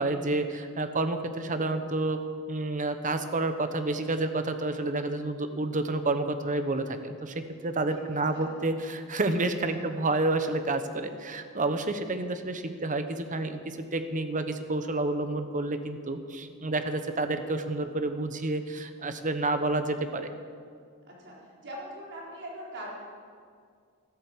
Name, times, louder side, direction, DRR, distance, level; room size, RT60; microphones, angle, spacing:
voice 1, 0.0-2.2 2.5-20.3, right 2 dB, 35° right, 8 dB, 1.0 m, -29 dB
voice 2, 7.9-8.5 9.6-9.8 21.1-22.9, right 1 dB, 55° right, -4 dB, 4.4 m, -42 dB
13.0 x 11.5 x 8.0 m, 2.1 s
head